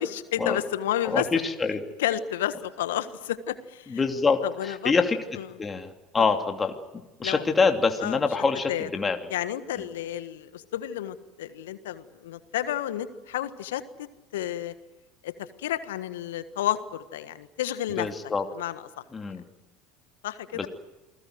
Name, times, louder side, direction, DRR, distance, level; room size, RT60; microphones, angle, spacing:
voice 1, 0.0-1.3 2.0-4.1 4.4-5.0 5.4-5.5 6.2-6.3 7.2-7.5 8.0-8.3 8.7-8.9 9.3-14.1 14.3-14.7 15.2-15.3 15.6-18.1 18.5-18.9 20.2-20.7, left 12 dB, 70° left, 12 dB, 1.5 m, -31 dB
voice 2, 1.1-1.8 3.9-4.4 4.8-5.2 5.6-5.9 6.1-6.7 7.2-9.2 18.0-18.4 19.1-19.4 20.5-20.7, left 4 dB, 25° left, 4 dB, 2.8 m, -24 dB
28.0 x 20.0 x 7.9 m, 1.1 s
figure-of-eight pair, 70°, 0 cm